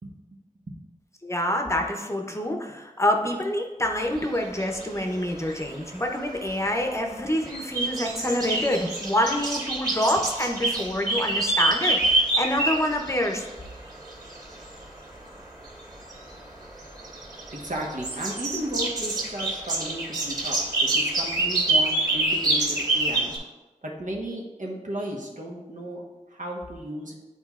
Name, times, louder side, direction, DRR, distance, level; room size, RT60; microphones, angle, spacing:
voice 1, 1.2-13.5, left 1 dB, 20° left, 2 dB, 0.7 m, -26 dB
sound 1, 4.0-23.4, right 2 dB, 30° right, 1.9 m, -27 dB
voice 2, 17.5-23.3 23.8-27.1, right 1 dB, 70° right, -2 dB, 1.1 m, -34 dB
9.6 x 4.2 x 2.4 m, 1.1 s
wide cardioid pair, 70°, 13 cm